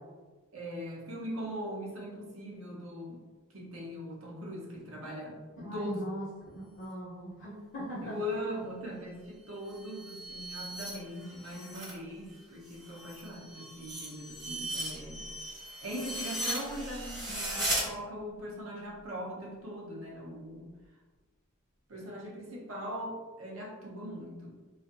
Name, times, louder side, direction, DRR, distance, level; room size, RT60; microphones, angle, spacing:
voice 1, 0.5-3.2 3.5-6.0 8.0-15.2 15.8-20.7 21.9-24.6, equal, 70° right, -4 dB, 0.8 m, -40 dB
voice 2, 5.6-6.3 6.8-8.2, right 1 dB, 55° left, -7 dB, 0.7 m, -39 dB
sound 1, 9.6-12.0 12.3-17.8, right 1 dB, 20° right, 0.8 m, -38 dB
2.5 x 2.4 x 2.4 m, 1.3 s
head